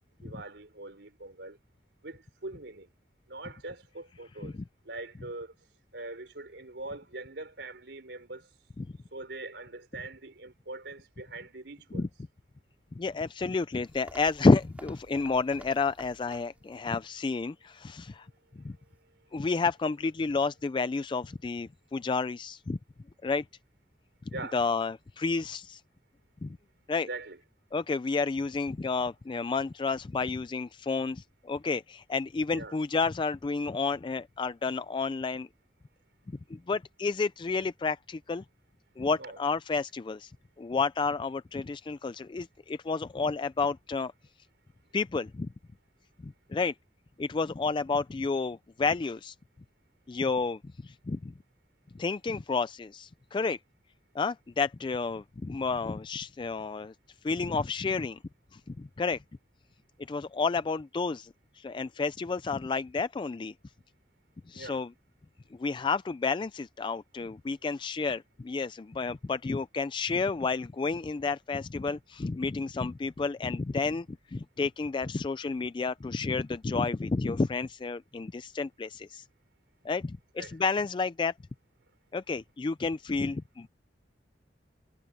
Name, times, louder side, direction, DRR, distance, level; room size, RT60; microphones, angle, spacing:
voice 1, 0.2-1.6 2.0-2.9 3.3-4.5 4.9-5.5 5.9-8.4 9.1-12.1 24.3-24.6 27.1-27.4 32.5-32.7 39.2-39.4 64.5-64.8 80.4-80.5, right 2 dB, 85° right, 3.6 m, -42 dB
voice 2, 13.0-18.3 18.6-18.8 19.3-22.8 23.2-23.4 24.5-25.8 26.4-26.6 26.9-27.1 27.7-35.5 36.5-38.4 39.0-40.3 40.6-44.1 44.9-45.5 46.2-46.7 47.2-49.3 50.1-51.3 51.9-53.6 54.1-56.9 57.2-58.2 58.5-59.2 60.1-63.5 64.5-64.9 65.5-79.3 79.8-81.3 82.1-83.7, left 4 dB, 30° left, 0.3 m, -30 dB
sound 1, 13.8-16.8 17.1-17.2 17.8-17.9, right 1 dB, 10° right, 2.8 m, -52 dB
head